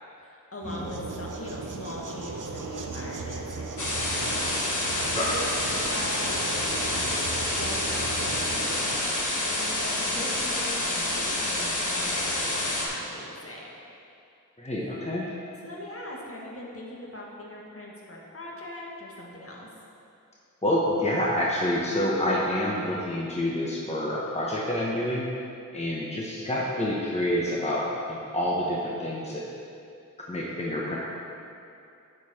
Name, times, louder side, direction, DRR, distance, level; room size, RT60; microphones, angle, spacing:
voice 1, 0.2-4.5 4.9-7.2 7.5-13.8 14.8-14.9 15.6-19.7, left 1 dB, 45° left, -3 dB, 1.6 m, -41 dB
sound 1, 0.6-9.0, right 3 dB, 70° right, 0.7 m, -37 dB
sound 2, 3.8-12.9, left 1 dB, 65° left, 1.3 m, -28 dB
voice 2, 14.6-15.3 20.6-25.3 25.7-27.8 28.1-29.4 30.3-31.0, left 1 dB, 20° left, -5 dB, 1.1 m, -28 dB
11.0 x 4.5 x 4.3 m, 2.6 s
wide cardioid pair, 45°, 32 cm